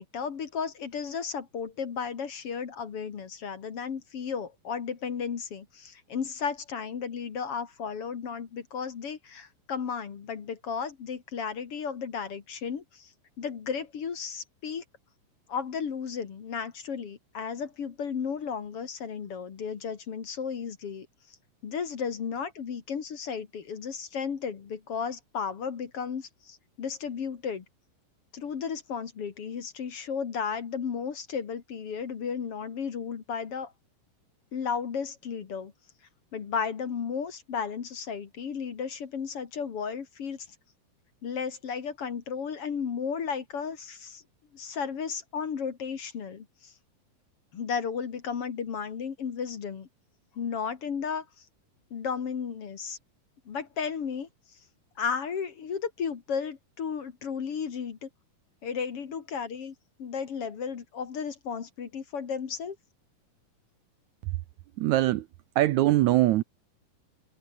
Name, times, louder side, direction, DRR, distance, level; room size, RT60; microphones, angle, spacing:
voice 1, 0.0-13.1 13.4-14.8 15.5-21.1 21.6-27.6 28.3-33.7 34.5-35.7 36.3-40.5 41.2-44.2 44.5-46.7 47.5-49.9 50.3-51.4 51.9-53.0 53.5-54.3 55.0-58.1 58.6-62.8, left 6 dB, 50° left, 2.6 m, -34 dB
voice 2, 64.8-65.3 65.6-66.4, right 15 dB, 75° right, 1.9 m, -22 dB
omnidirectional pair, 3.8 m